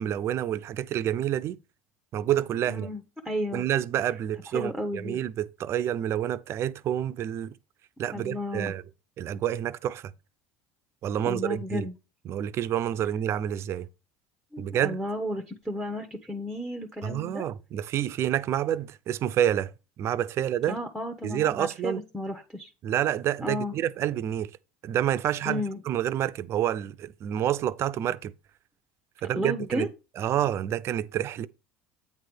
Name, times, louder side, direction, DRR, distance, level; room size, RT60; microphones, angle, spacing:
voice 1, 0.0-1.6 2.1-2.9 3.5-7.6 8.0-8.8 9.2-10.1 11.0-11.9 12.3-13.9 14.6-15.0 17.0-19.7 20.0-20.8 21.2-22.0 22.8-24.5 24.8-28.3 29.2-29.9 30.2-31.5, right 11 dB, 50° right, 0.5 m, -28 dB
voice 2, 2.6-3.6 4.5-5.2 8.1-8.7 11.3-11.9 14.5-17.5 20.7-22.7 23.4-23.7 25.4-25.8 29.3-29.9, left 1 dB, ahead, 1.0 m, -33 dB
8.7 x 3.3 x 6.1 m
supercardioid pair, 90°, 6 cm